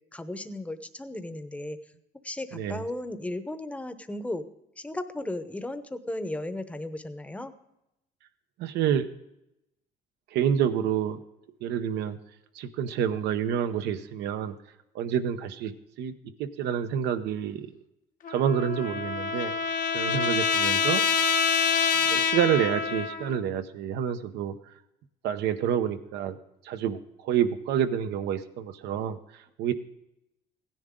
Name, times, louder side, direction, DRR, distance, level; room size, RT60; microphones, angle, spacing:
voice 1, 0.1-1.8 2.2-4.5 4.8-7.5, left 1 dB, 10° left, 10 dB, 0.9 m, -35 dB
voice 2, 2.5-2.8 8.6-9.1 10.3-11.2 11.6-12.2 12.5-14.5 14.9-15.7 16.0-16.1 16.4-17.7 18.3-19.5 19.9-21.0 22.1-24.5 25.2-26.4 26.6-29.7, right 9 dB, 85° right, 9 dB, 0.9 m, -28 dB
Trumpet, 18.2-23.4, left 6 dB, 55° left, 0.9 m, -26 dB
16.0 x 10.5 x 3.7 m, 0.87 s
cardioid pair, 110°, 17 cm